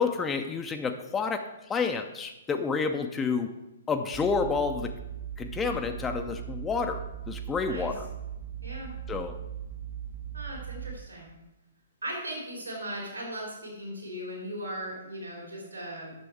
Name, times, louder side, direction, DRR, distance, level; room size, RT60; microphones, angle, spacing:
voice 1, 0.0-1.4 1.7-3.5 3.9-4.9 5.4-7.0 7.3-8.1 9.1-9.3, left 5 dB, 15° left, 6 dB, 0.5 m, -29 dB
sound 1, 4.1-11.0, right 9 dB, 40° right, 1.1 m, -39 dB
voice 2, 7.6-7.9 8.6-8.9 10.3-11.3 12.0-16.1, equal, 75° right, -2 dB, 3.3 m, -38 dB
9.6 x 6.9 x 4.7 m, 0.95 s
figure-of-eight pair, 120°, 0 cm